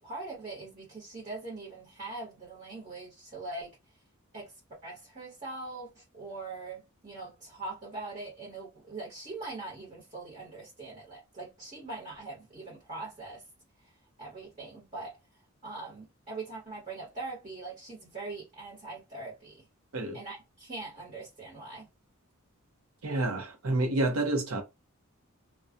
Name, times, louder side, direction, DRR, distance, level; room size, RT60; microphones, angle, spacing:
voice 1, 0.0-3.8 4.3-4.6 4.8-13.4 13.8-15.2 15.6-19.7 20.1-21.9, right 3 dB, 35° right, 1.1 m, -42 dB
voice 2, 23.0-24.6, right 2 dB, 75° right, 0.7 m, -29 dB
2.3 x 2.2 x 2.5 m
head